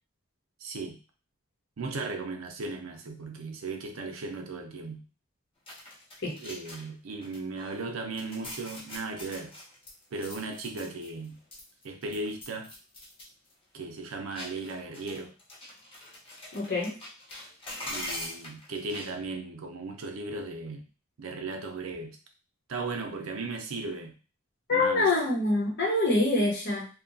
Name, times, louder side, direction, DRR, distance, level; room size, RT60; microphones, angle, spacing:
voice 1, 0.6-1.0 1.8-5.0 6.4-9.5 10.1-11.4 11.8-12.7 13.7-15.3 17.9-20.8 21.2-22.2 22.7-24.1 24.7-25.1, right 3 dB, 80° right, 4 dB, 0.5 m, -36 dB
sound 1, 5.7-6.9 7.2-7.9 8.2-11.3 11.5-13.2 13.5-13.6 14.3-19.1, left 1 dB, 25° left, 0.8 m, -43 dB
voice 2, 16.5-17.0 24.7-26.9, left 2 dB, 55° left, -2 dB, 0.9 m, -25 dB
2.8 x 2.2 x 2.6 m, 0.35 s
head